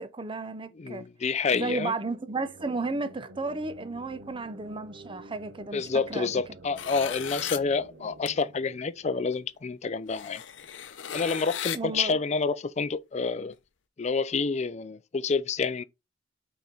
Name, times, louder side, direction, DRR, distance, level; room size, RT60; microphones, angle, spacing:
voice 1, 0.0-1.1 1.5-6.3 11.7-12.2, right 3 dB, 25° right, 0.6 m, -33 dB
voice 2, 0.8-1.9 5.7-10.4 11.1-13.6 14.0-15.8, left 4 dB, 35° left, 0.4 m, -28 dB
sound 1, 2.1-9.7, right 1 dB, 65° right, 1.2 m, -49 dB
sound 2, 6.8-7.6 8.3-8.4 9.3-9.4 10.1-11.8, left 9 dB, 75° left, 0.6 m, -36 dB
5.7 x 4.3 x 3.9 m
head